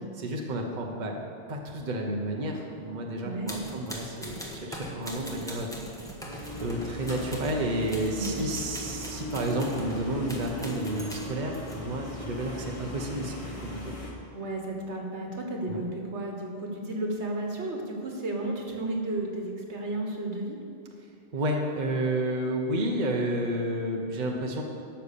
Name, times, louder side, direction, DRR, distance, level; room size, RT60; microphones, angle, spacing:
voice 1, 0.2-1.2 1.5-5.7 6.6-13.9 15.7-15.8 21.3-24.6, right 1 dB, 40° right, 1 dB, 1.1 m, -31 dB
voice 2, 3.2-3.6 8.2-8.4 14.3-20.5, right 2 dB, 70° right, 1 dB, 1.7 m, -33 dB
sound 1, 3.4-7.6 7.9-11.8, equal, 5° left, 1.3 m, -41 dB
sound 2, 6.3-14.1, left 1 dB, 30° left, 1.5 m, -38 dB
12.5 x 5.8 x 6.8 m, 2.4 s
omnidirectional pair, 1.2 m